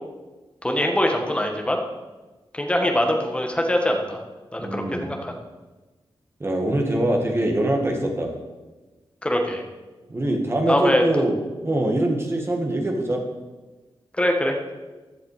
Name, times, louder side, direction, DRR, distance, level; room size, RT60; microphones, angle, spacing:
voice 1, 0.6-1.8 2.5-4.2 4.5-5.3 9.2-9.6 10.7-11.0 14.2-14.5, left 1 dB, 10° left, 2 dB, 1.6 m, -22 dB
voice 2, 4.6-5.1 6.4-8.3 10.1-11.4 11.6-13.2, right 1 dB, 25° right, 2 dB, 2.0 m, -23 dB
15.5 x 10.5 x 5.0 m, 1.2 s
wide cardioid pair, 180°, 10 cm